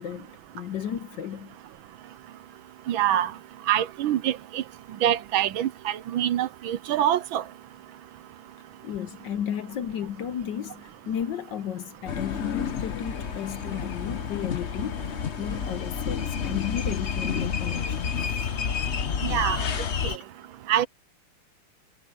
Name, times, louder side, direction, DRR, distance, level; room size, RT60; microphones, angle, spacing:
voice 1, 0.0-1.6 8.8-18.2, left 9 dB, 65° left, 1.3 m, -34 dB
voice 2, 2.9-3.3 3.7-4.6 5.0-7.4 19.2-19.6 20.0-20.1 20.7-20.9, right 11 dB, 75° right, 1.4 m, -25 dB
sound 1, 12.1-20.2, left 7 dB, 50° left, 0.8 m, -30 dB
omnidirectional pair, 2.4 m